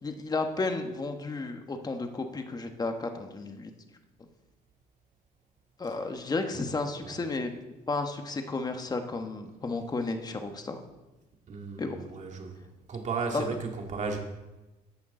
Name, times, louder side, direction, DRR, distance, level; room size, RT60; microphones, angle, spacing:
voice 1, 0.0-3.7 5.8-7.5 7.9-10.8 11.8-12.0 13.3-13.5, left 3 dB, 25° left, 6 dB, 1.3 m, -32 dB
voice 2, 11.5-14.2, right 4 dB, 45° right, 3 dB, 2.0 m, -35 dB
13.5 x 8.6 x 3.8 m, 1.1 s
cardioid pair, 110°, 17 cm